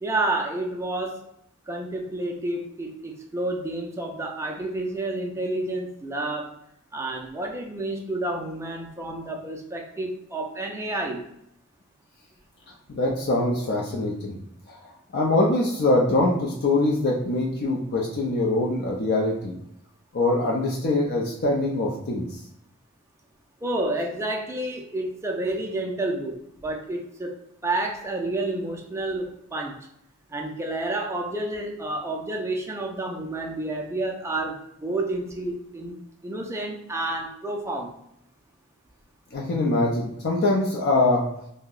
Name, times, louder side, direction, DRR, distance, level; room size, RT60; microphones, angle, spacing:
voice 1, 0.0-1.2 1.7-6.5 6.9-11.3 23.6-29.8 30.3-36.0 36.2-37.9, right 2 dB, 10° right, 1 dB, 0.4 m, -30 dB
voice 2, 12.9-14.3 15.1-19.5 20.1-22.2 39.3-41.2, left 2 dB, 50° left, -2 dB, 0.4 m, -23 dB
2.7 x 2.0 x 3.7 m, 0.77 s
head